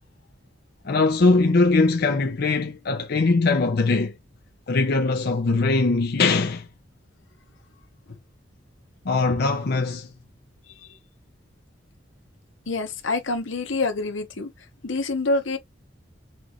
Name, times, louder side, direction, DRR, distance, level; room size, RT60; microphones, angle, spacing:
voice 1, 0.8-4.1 4.7-6.7 9.0-10.1, left 3 dB, 55° left, 0.6 m, -21 dB
voice 2, 12.7-14.5 14.8-15.6, left 3 dB, 85° left, 1.0 m, -26 dB
5.9 x 2.4 x 2.9 m
head